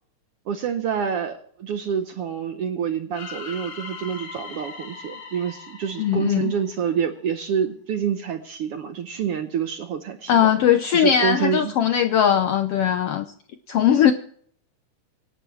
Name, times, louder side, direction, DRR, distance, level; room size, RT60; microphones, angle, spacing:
voice 1, 0.5-10.5 10.9-11.7, right 7 dB, 70° right, 1.5 m, -27 dB
sound 1, 3.1-7.2, left 4 dB, 55° left, 2.9 m, -40 dB
voice 2, 6.0-6.5 10.3-13.2 13.7-14.1, left 9 dB, 75° left, 1.4 m, -19 dB
25.5 x 11.0 x 3.2 m
omnidirectional pair, 3.5 m